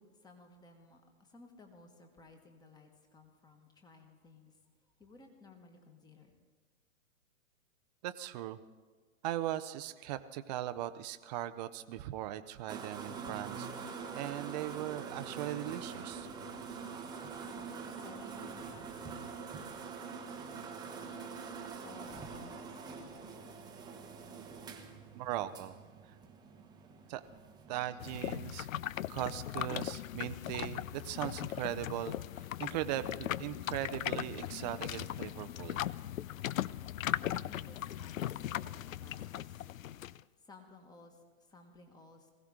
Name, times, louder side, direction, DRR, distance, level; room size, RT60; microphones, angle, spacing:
voice 1, 0.0-6.4 17.4-23.5 37.2-39.7 40.1-42.3, left 3 dB, 10° left, 5 dB, 1.4 m, -58 dB
voice 2, 8.0-8.6 9.2-13.9 14.1-16.3 25.1-25.8 27.1-27.2 27.7-28.7 29.1-35.8, right 13 dB, 30° right, 11 dB, 0.6 m, -39 dB
Workshop polishing machine, 12.7-28.2, right 5 dB, 10° right, 0.9 m, -45 dB
sound 1, 28.0-40.2, left 12 dB, 75° left, 0.5 m, -38 dB
20.0 x 16.0 x 3.7 m, 1.3 s
hypercardioid pair, 125°, 41 cm